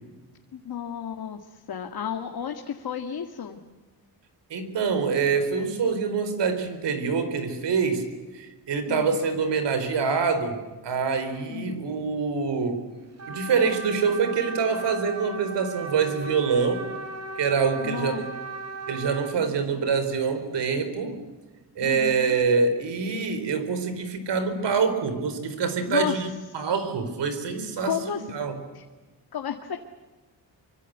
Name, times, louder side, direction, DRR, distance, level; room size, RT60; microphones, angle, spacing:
voice 1, 0.5-3.6 8.9-9.2 11.5-11.8 17.8-18.3 19.4-19.9 21.8-22.4 25.9-26.3 27.8-28.3 28.7-28.8 29.3-29.8, left 8 dB, 60° left, 4 dB, 2.0 m, -33 dB
voice 2, 4.5-8.1 8.3-12.9 13.3-16.9 17.4-18.3 18.9-21.2 21.8-26.3 26.5-28.6, right 5 dB, 90° right, 10 dB, 4.5 m, -25 dB
Trumpet, 13.2-19.4, right 3 dB, 40° right, 4.1 m, -37 dB
25.5 x 25.0 x 8.2 m, 1.2 s
wide cardioid pair, 130°, 41 cm